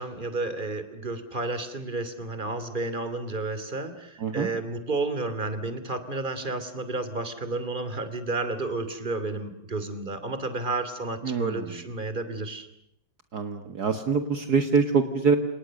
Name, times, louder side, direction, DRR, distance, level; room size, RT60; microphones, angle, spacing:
voice 1, 0.0-12.7, right 2 dB, 25° right, 11 dB, 3.0 m, -31 dB
voice 2, 11.2-11.7 13.3-15.4, right 5 dB, 55° right, 7 dB, 2.2 m, -24 dB
29.0 x 28.5 x 6.6 m, 0.75 s
omnidirectional pair, 2.0 m